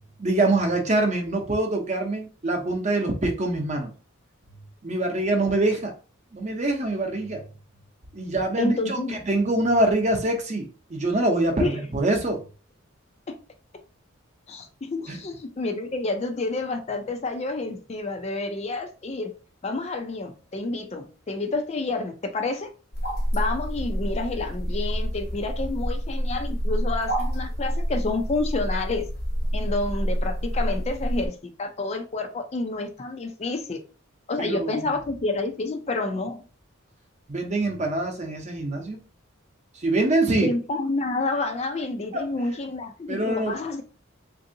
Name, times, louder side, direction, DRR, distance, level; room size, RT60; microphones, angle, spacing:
voice 1, 0.2-3.9 4.8-5.9 6.3-7.4 8.1-9.0 9.3-12.4 15.1-15.2 34.4-34.7 37.3-39.0 39.8-40.5 42.1-42.3 43.1-43.5, right 2 dB, 35° right, 0.7 m, -24 dB
voice 2, 8.6-9.2 11.6-11.8 13.3-13.4 14.5-19.3 19.6-22.7 23.3-29.1 29.5-33.8 34.3-36.4 40.4-43.8, left 3 dB, 30° left, 0.4 m, -29 dB
sound 1, 22.9-31.3, equal, 45° left, 0.8 m, -28 dB
3.5 x 2.6 x 2.7 m
head